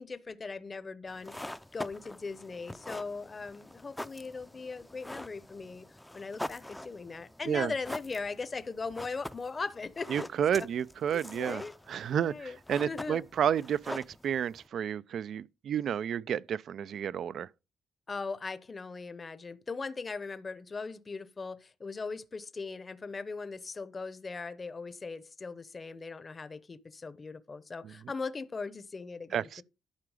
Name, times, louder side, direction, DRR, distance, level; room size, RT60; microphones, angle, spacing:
voice 1, 0.0-10.3 10.6-10.7 11.3-11.7 12.2-12.6 12.8-13.2 18.1-29.6, left 4 dB, 30° left, 0.8 m, -39 dB
sound 1, 1.1-14.7, left 1 dB, 5° left, 0.5 m, -45 dB
voice 2, 10.1-11.6 11.9-17.5 27.8-27.9 29.3-29.6, right 9 dB, 65° right, 0.4 m, -31 dB
11.5 x 4.8 x 4.9 m
cardioid pair, 90°, 0 cm